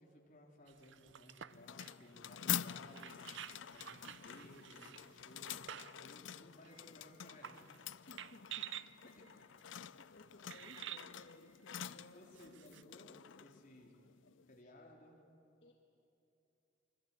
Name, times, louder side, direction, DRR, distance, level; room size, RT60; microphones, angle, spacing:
voice 1, 0.0-3.4 3.6-7.8 9.0-9.4 12.0-13.9 14.5-15.2, left 1 dB, 40° left, -1 dB, 4.0 m, -59 dB
sound 1, 0.7-6.1 6.6-6.7 7.3-7.8 8.2-8.9 9.7-9.8 10.5-11.1 12.3-12.8, right 10 dB, 70° right, 0.6 m, -50 dB
sound 2, 1.5-14.6, left 10 dB, 75° left, 0.5 m, -47 dB
sound 3, 6.7-8.0 8.2-12.0, right 2 dB, 25° right, 2.6 m, -70 dB
voice 2, 8.1-8.7 9.2-9.3 10.0-12.6 15.6-15.7, left 1 dB, 60° left, 2 dB, 1.7 m, -60 dB
25.5 x 25.5 x 8.8 m, 2.8 s
head